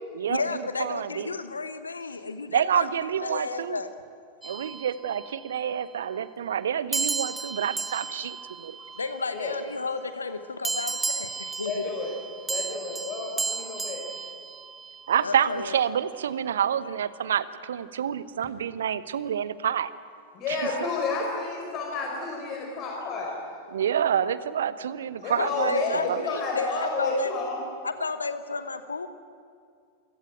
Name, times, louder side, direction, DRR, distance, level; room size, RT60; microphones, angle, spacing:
voice 1, 0.3-2.9 3.2-3.9 9.0-11.9 15.2-15.8 25.3-27.4 27.8-29.1, left 4 dB, 75° left, 12 dB, 1.0 m, -32 dB
voice 2, 0.8-1.3 2.5-3.8 4.4-8.8 15.1-19.9 20.5-20.7 23.7-26.2, right 9 dB, 65° right, 16 dB, 0.9 m, -28 dB
sound 1, 4.4-5.6 6.9-9.6 10.6-15.2, right 4 dB, 10° right, 0.6 m, -34 dB
voice 3, 11.6-12.1 12.5-14.0 20.3-23.4 25.2-27.6, left 3 dB, 35° left, 0 dB, 5.0 m, -30 dB
27.0 x 17.0 x 9.0 m, 2.3 s
figure-of-eight pair, 90°, 0 cm